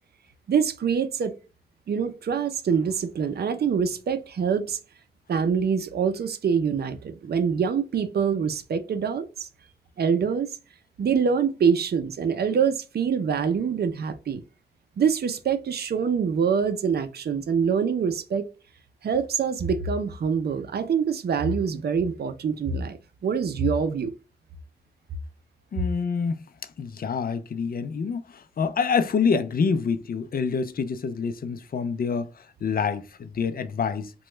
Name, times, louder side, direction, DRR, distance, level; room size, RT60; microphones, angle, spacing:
voice 1, 0.5-1.3 1.9-4.8 5.3-9.5 10.0-10.5 11.0-14.4 15.0-18.5 19.0-23.0 23.2-24.1, right 6 dB, 65° right, 0.5 m, -25 dB
voice 2, 25.7-26.4 26.8-32.3 32.6-34.1, left 5 dB, 55° left, 0.4 m, -26 dB
3.0 x 2.2 x 3.1 m
cardioid pair, 70°, 18 cm